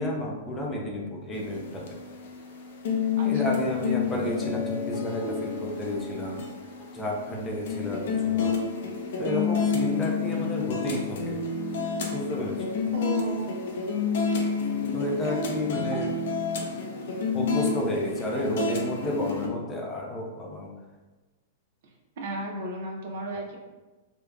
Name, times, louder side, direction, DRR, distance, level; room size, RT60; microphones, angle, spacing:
voice 1, 0.0-2.0 3.2-6.4 6.9-8.6 9.2-11.4 12.1-12.6 14.9-16.1 17.3-20.7, left 1 dB, 15° left, -1 dB, 0.5 m, -31 dB
sound 1, 1.3-19.5, left 5 dB, 70° left, 0.5 m, -29 dB
voice 2, 3.2-3.5 5.2-5.4 12.9-13.5 17.5-17.8 21.8-23.6, right 2 dB, 65° right, 0 dB, 0.6 m, -34 dB
3.2 x 2.1 x 2.3 m, 1.2 s
hypercardioid pair, 130°, 0 cm